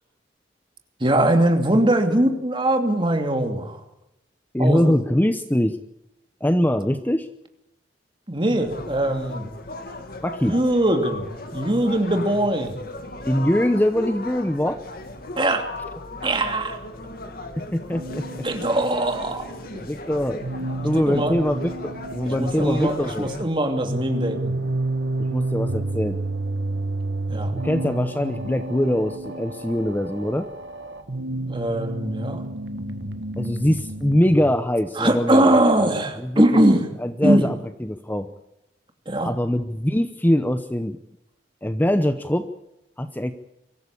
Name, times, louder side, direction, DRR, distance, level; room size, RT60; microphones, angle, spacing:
voice 1, 1.0-3.8 4.6-5.0 8.3-9.5 10.4-11.3 11.5-12.8 15.4-15.7 16.2-16.8 18.4-19.4 20.9-21.3 22.2-24.6 27.3-27.5 31.5-32.4 35.0-36.8 37.2-37.4 39.1-39.3, right 1 dB, 25° right, 5 dB, 2.8 m, -21 dB
voice 2, 4.5-5.8 6.4-7.3 10.2-10.5 13.2-14.8 17.6-18.7 19.8-20.4 20.8-23.3 25.2-26.2 27.6-30.5 33.4-35.9 36.2-36.6 37.0-38.3 39.2-41.0 41.6-42.5 43.0-43.3, equal, 10° left, 10 dB, 0.8 m, -23 dB
sound 1, 8.5-23.4, left 2 dB, 55° left, 2.5 m, -37 dB
sound 2, 17.9-34.6, right 2 dB, 75° right, 1.8 m, -30 dB
24.0 x 14.5 x 8.4 m, 0.86 s
head